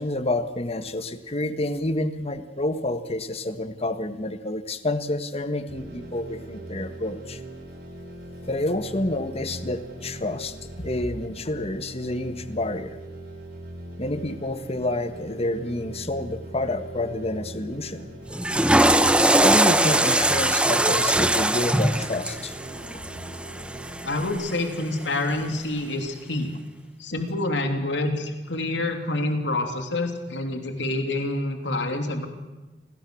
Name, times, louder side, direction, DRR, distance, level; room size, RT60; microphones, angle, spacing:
voice 1, 0.0-7.4 8.4-13.0 14.0-18.1 19.3-22.5 22.9-23.0, left 2 dB, 35° left, 9 dB, 1.6 m, -29 dB
sound 1, 5.7-24.3, right 1 dB, 60° right, 6.2 m, -41 dB
Water / Toilet flush, 18.3-24.5, right 1 dB, 5° right, 1.0 m, -21 dB
voice 2, 24.0-26.5 27.0-32.3, left 2 dB, 80° left, 5 dB, 3.1 m, -27 dB
28.5 x 21.0 x 6.5 m, 1.2 s
head